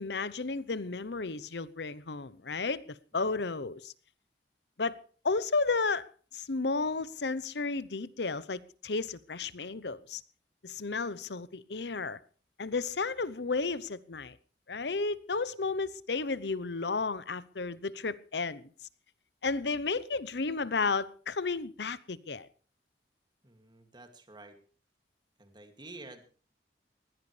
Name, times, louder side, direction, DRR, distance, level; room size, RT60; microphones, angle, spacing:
voice 1, 0.0-3.9 4.8-5.0 5.2-6.1 6.3-10.2 10.6-12.2 12.6-14.4 14.7-18.7 19.4-22.5, left 4 dB, 70° left, 0.9 m, -33 dB
voice 2, 3.1-3.5 23.4-24.6 25.4-26.2, right 2 dB, 25° right, 2.4 m, -50 dB
20.5 x 16.0 x 3.4 m
head